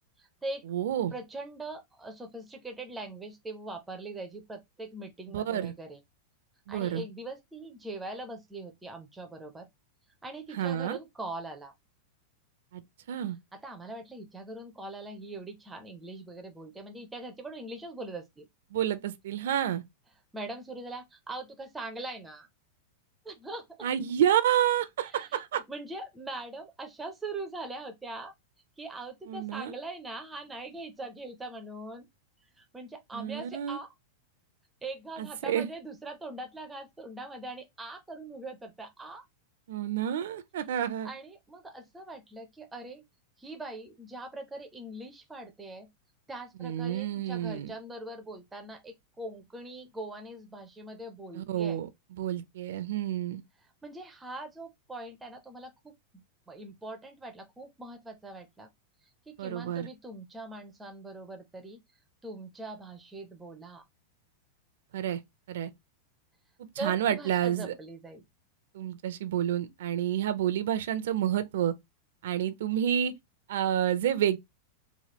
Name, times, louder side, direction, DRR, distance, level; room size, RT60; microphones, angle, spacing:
voice 1, 0.2-0.6 1.1-6.0 6.7-9.7 10.2-11.7 13.5-18.5 20.3-22.5 23.2-23.9 25.1-25.4 25.7-28.3 28.8-32.1 32.6-33.9 34.8-39.2 41.0-43.0 43.4-45.9 46.3-51.8 53.8-58.7 59.3-61.8 62.2-63.8 66.8-68.2, right 2 dB, 5° right, 0.4 m, -42 dB
voice 2, 0.7-1.1 5.3-5.7 6.7-7.0 10.5-11.0 12.7-12.8 13.1-13.4 18.7-19.8 23.8-25.6 29.3-29.7 33.1-33.8 35.2-35.7 39.7-41.1 46.6-47.7 51.3-51.9 52.2-53.4 59.4-59.9 64.9-65.2 65.5-65.7 66.6-67.7 68.7-71.7 72.2-73.1 73.5-74.4, right 10 dB, 70° right, 0.4 m, -29 dB
3.0 x 2.3 x 2.8 m
supercardioid pair, 170°, 0 cm